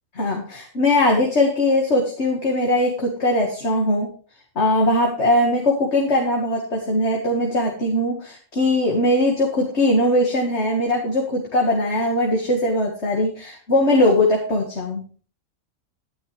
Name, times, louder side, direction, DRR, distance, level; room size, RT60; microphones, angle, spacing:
voice 1, 0.2-4.1 4.6-15.0, left 1 dB, 60° left, 0 dB, 2.3 m, -20 dB
12.0 x 11.0 x 3.4 m, 0.40 s
omnidirectional pair, 1.3 m